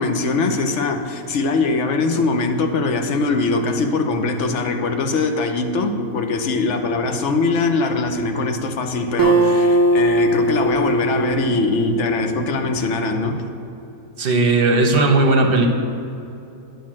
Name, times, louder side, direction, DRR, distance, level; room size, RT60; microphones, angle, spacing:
voice 1, 0.0-13.4, left 3 dB, 60° left, 6 dB, 1.0 m, -22 dB
Acoustic guitar, 9.2-12.8, right 1 dB, 30° right, 0.4 m, -19 dB
voice 2, 14.2-15.7, right 2 dB, 45° right, 3 dB, 1.0 m, -16 dB
9.4 x 5.2 x 7.4 m, 2.7 s
omnidirectional pair, 1.5 m